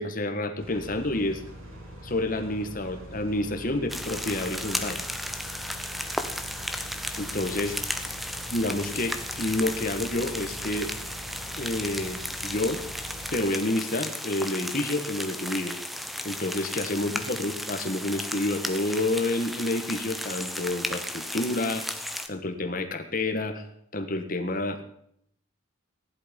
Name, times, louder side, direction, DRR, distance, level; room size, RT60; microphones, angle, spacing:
voice 1, 0.0-1.4 2.0-5.0 7.2-7.7 8.5-10.9 11.5-12.8 13.3-15.8 16.2-23.7 23.9-24.8, left 2 dB, 40° left, 6 dB, 1.6 m, -29 dB
sound 1, 0.6-13.4, equal, 85° right, 4.3 m, -43 dB
sound 2, 3.9-22.3, equal, ahead, 0.9 m, -35 dB
15.5 x 11.0 x 5.3 m, 0.70 s
head